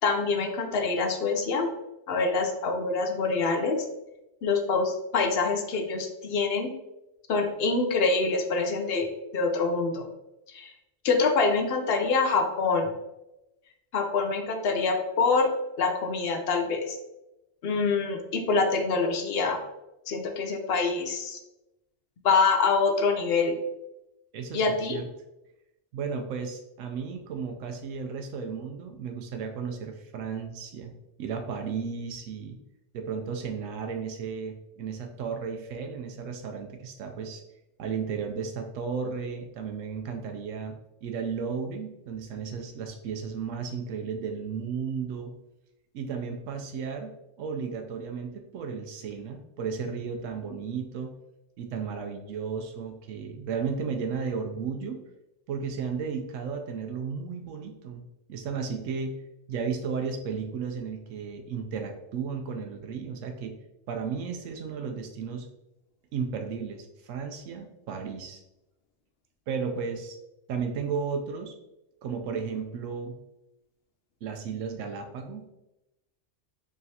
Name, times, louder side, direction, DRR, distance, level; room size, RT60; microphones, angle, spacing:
voice 1, 0.0-1.7 2.1-3.8 4.4-6.7 7.3-10.1 10.5-10.7 11.0-12.9 13.9-15.5 15.8-17.0 17.6-19.6 20.1-21.4 22.2-23.6 24.5-25.0, left 4 dB, 60° left, 4 dB, 0.7 m, -25 dB
voice 2, 24.3-25.0 25.9-32.6 32.9-37.4 37.8-40.7 41.0-45.3 45.9-47.1 47.4-51.1 51.6-55.0 55.5-59.2 59.5-63.5 63.9-65.5 66.1-68.4 69.5-70.2 70.5-71.5 72.0-73.2 74.2-75.5, right 6 dB, 90° right, 4 dB, 0.9 m, -34 dB
4.6 x 3.1 x 2.7 m, 0.91 s
omnidirectional pair, 1.3 m